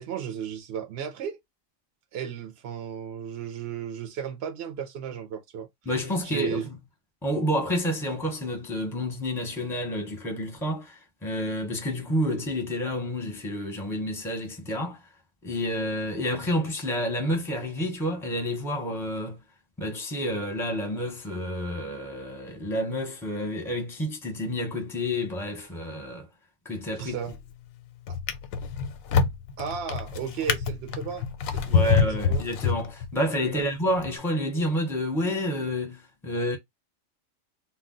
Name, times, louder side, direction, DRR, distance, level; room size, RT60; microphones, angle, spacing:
voice 1, 0.0-1.4 2.1-5.7 6.2-6.7 27.0-27.4 28.1-28.2 29.6-32.4 33.5-33.6, right 7 dB, 65° right, 0.7 m, -34 dB
voice 2, 5.9-6.7 7.2-15.0 15.4-19.4 19.8-26.3 26.6-27.2 31.7-36.6, equal, ahead, 0.6 m, -29 dB
Drawer open or close, 27.1-27.5 28.1-33.3 34.0-34.1, left 6 dB, 85° left, 1.0 m, -26 dB
2.3 x 2.1 x 3.7 m
omnidirectional pair, 1.4 m